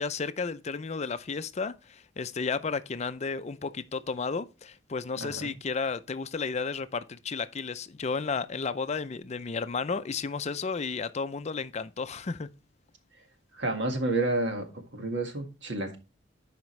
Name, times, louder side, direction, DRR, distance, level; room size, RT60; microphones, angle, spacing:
voice 1, 0.0-12.5, left 4 dB, 35° left, 0.5 m, -33 dB
voice 2, 13.6-16.0, right 2 dB, 70° right, 1.8 m, -30 dB
12.0 x 5.1 x 3.2 m
head